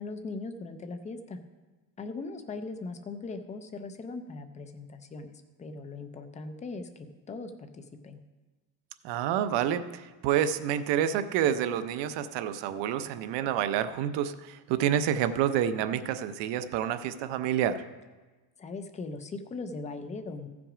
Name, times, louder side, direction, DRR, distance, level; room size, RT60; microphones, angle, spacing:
voice 1, 0.0-1.4 2.0-8.2 18.6-20.5, left 3 dB, 15° left, 8 dB, 0.4 m, -39 dB
voice 2, 9.0-17.8, right 10 dB, 65° right, 11 dB, 0.7 m, -28 dB
15.0 x 6.0 x 4.9 m, 1.2 s
cardioid pair, 165°, 46 cm